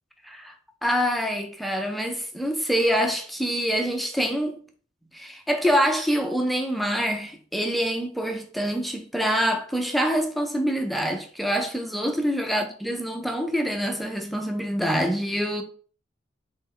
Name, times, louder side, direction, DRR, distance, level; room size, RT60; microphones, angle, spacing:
voice 1, 0.2-0.5 0.8-4.6 5.1-15.6, equal, ahead, 0.5 m, -25 dB
3.3 x 3.3 x 3.5 m
head